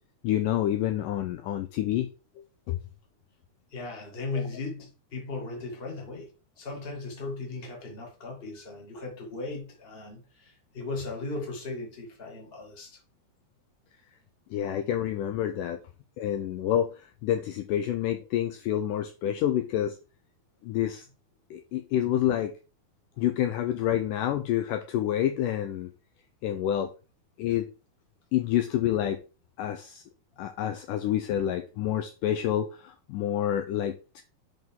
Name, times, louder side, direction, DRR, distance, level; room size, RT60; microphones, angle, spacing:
voice 1, 0.2-2.1 2.7-2.8 14.5-15.8 16.2-20.0 20.6-21.0 21.5-22.5 23.2-25.9 26.4-26.9 27.4-27.7 28.3-29.2 29.6-30.0 30.4-34.2, left 11 dB, 80° left, 1.9 m, -28 dB
voice 2, 3.7-6.3 6.6-13.0 23.1-23.2, left 3 dB, 20° left, 1.6 m, -37 dB
7.6 x 5.2 x 3.7 m
omnidirectional pair, 4.3 m